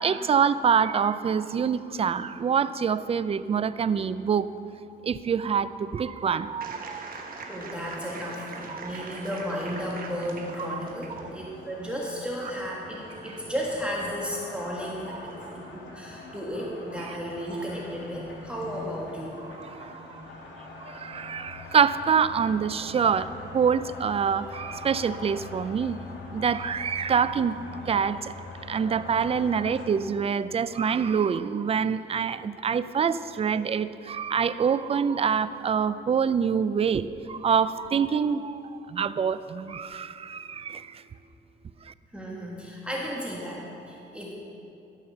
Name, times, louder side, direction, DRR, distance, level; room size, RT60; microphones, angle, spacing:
voice 1, 0.0-4.5 5.0-7.1 8.7-8.9 10.7-10.8 15.1-15.3 17.1-17.2 19.6-19.9 20.8-26.0 26.3-27.6 27.9-28.3 28.7-38.6 38.9-40.9, right 6 dB, 30° right, 14 dB, 0.4 m, -26 dB
sound 1, 6.6-11.3, right 3 dB, 45° right, 1.2 m, -41 dB
voice 2, 7.5-15.3 15.9-19.4 42.1-44.3, equal, 5° right, -4 dB, 1.6 m, -34 dB
sound 2, 10.3-29.9, left 3 dB, 75° left, 1.8 m, -44 dB
13.0 x 5.7 x 6.8 m, 2.8 s
cardioid pair, 90°, 20 cm